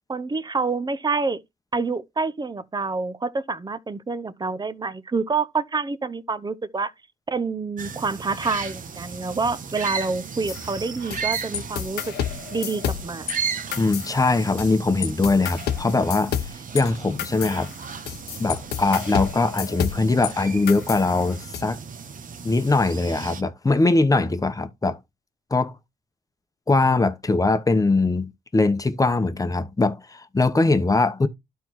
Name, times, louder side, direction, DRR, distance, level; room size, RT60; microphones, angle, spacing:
voice 1, 0.1-1.4 1.7-6.9 7.3-12.1 12.5-13.3, right 4 dB, 25° right, 0.7 m, -27 dB
sound 1, 7.8-23.4, right 6 dB, 55° right, 1.0 m, -35 dB
sound 2, 10.5-13.4 13.7-14.7 15.0-20.3 20.7-21.6, left 10 dB, 80° left, 0.8 m, -30 dB
voice 2, 13.8-17.7 18.4-21.8 22.4-25.0 25.5-25.7 26.7-31.3, left 3 dB, 20° left, 1.0 m, -21 dB
12.0 x 4.6 x 3.1 m
cardioid pair, 70°, 17 cm